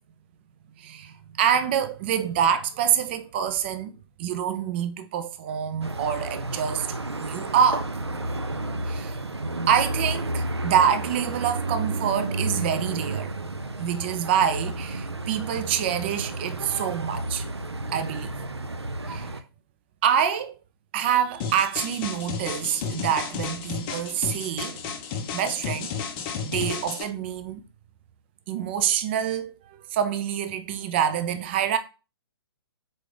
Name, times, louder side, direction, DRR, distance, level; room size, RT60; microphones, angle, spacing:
voice 1, 0.8-7.9 8.8-9.2 9.7-13.3 13.8-17.5 17.9-18.4 19.1-19.3 20.0-20.6 20.9-24.9 25.3-25.9 26.4-27.6 28.5-31.8, right 8 dB, 25° right, 0.4 m, -26 dB
sound 1, 5.8-19.4, right 2 dB, 85° right, 0.5 m, -31 dB
sound 2, 21.4-27.0, left 6 dB, 25° left, 0.6 m, -32 dB
4.1 x 3.4 x 3.3 m
figure-of-eight pair, 130°, 14 cm